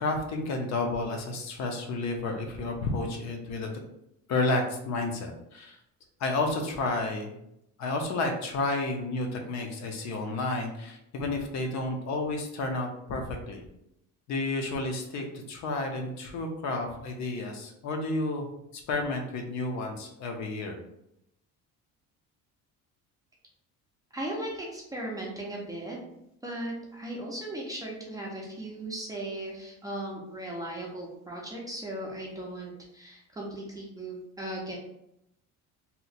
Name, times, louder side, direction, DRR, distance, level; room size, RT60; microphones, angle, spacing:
voice 1, 0.0-3.7 4.3-5.8 6.2-7.3 7.8-13.6 14.3-18.5 18.9-20.8, left 2 dB, 55° left, 3 dB, 0.6 m, -31 dB
voice 2, 24.1-26.0 26.4-34.8, right 1 dB, 10° right, -3 dB, 0.4 m, -37 dB
2.8 x 2.1 x 4.0 m, 0.79 s
cardioid pair, 175°, 32 cm